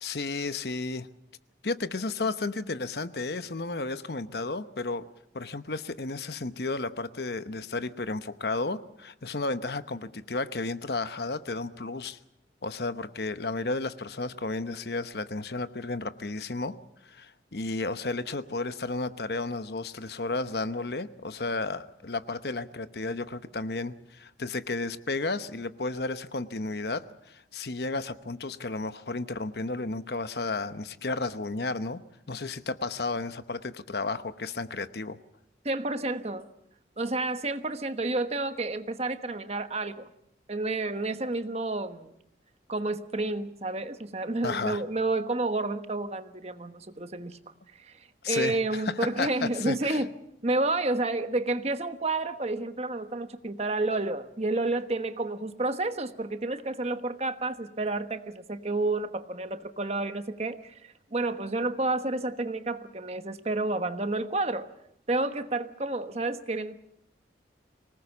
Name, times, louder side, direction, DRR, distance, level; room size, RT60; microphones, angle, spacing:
voice 1, 0.0-1.1 1.6-5.1 5.3-12.2 12.6-16.7 17.0-32.0 32.3-35.2 44.4-44.8 48.2-50.0, left 3 dB, 60° left, 12 dB, 0.9 m, -33 dB
voice 2, 35.6-36.5 37.0-40.1 40.5-42.1 42.7-47.4 47.7-48.0 48.3-50.1 50.4-64.7 65.1-66.8, right 2 dB, 35° right, 9 dB, 1.2 m, -30 dB
25.5 x 19.0 x 7.2 m, 0.77 s
head